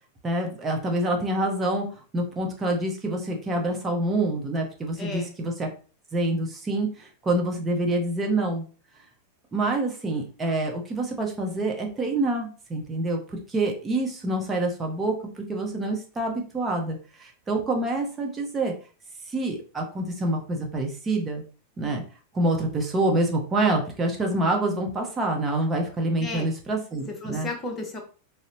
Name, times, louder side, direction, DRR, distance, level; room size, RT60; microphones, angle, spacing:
voice 1, 0.2-1.9 2.1-5.7 6.1-8.6 9.5-18.7 19.3-21.4 21.8-22.0 22.3-27.5, right 2 dB, 15° right, 1 dB, 0.8 m, -26 dB
voice 2, 5.0-5.3 26.2-26.5 27.1-28.0, left 2 dB, 20° left, 2 dB, 0.8 m, -34 dB
3.9 x 2.1 x 2.5 m, 0.38 s
figure-of-eight pair, 90°, 0 cm